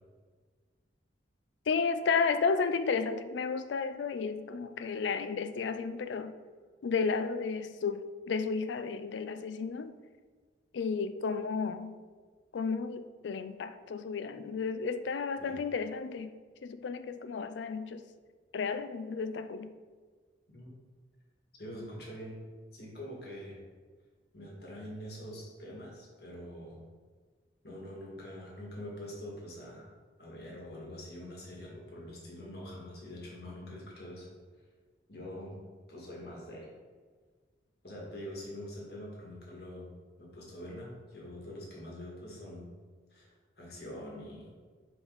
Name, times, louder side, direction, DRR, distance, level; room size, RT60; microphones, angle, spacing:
voice 1, 1.7-6.3 6.8-9.9 10.7-12.0 12.5-16.3 16.6-18.0 18.5-19.7, left 5 dB, 75° left, 10 dB, 0.4 m, -32 dB
voice 2, 20.5-20.8 21.6-22.4 22.7-23.6 24.3-26.8 27.6-29.9 30.2-34.3 35.1-35.6 35.9-36.7 37.8-39.9 40.2-42.7 43.1-44.5, left 1 dB, 55° left, -3 dB, 1.7 m, -44 dB
5.1 x 5.0 x 3.9 m, 1.5 s
head